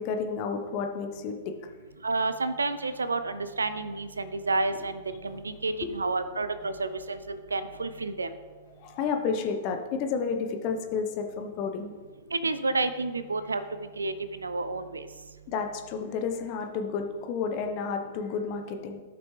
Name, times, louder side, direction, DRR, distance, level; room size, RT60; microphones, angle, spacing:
voice 1, 0.0-1.5 5.8-5.9 8.8-11.9 15.5-19.0, left 5 dB, 40° left, 5 dB, 1.0 m, -31 dB
voice 2, 2.0-8.3 12.3-13.6 14.0-15.1, right 3 dB, 80° right, 12 dB, 0.6 m, -30 dB
14.0 x 5.9 x 3.3 m, 1.5 s
figure-of-eight pair, 105°, 0 cm